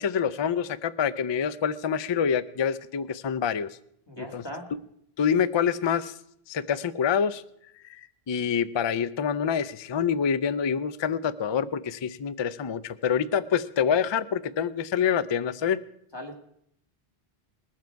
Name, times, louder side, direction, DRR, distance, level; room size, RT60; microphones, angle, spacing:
voice 1, 0.0-3.7 4.2-4.4 5.2-6.1 6.5-7.4 7.8-15.8, left 7 dB, 45° left, 16 dB, 0.4 m, -26 dB
voice 2, 4.1-4.7 16.1-16.3, equal, 25° left, 3 dB, 1.9 m, -38 dB
21.0 x 7.5 x 4.6 m, 0.73 s
omnidirectional pair, 1.1 m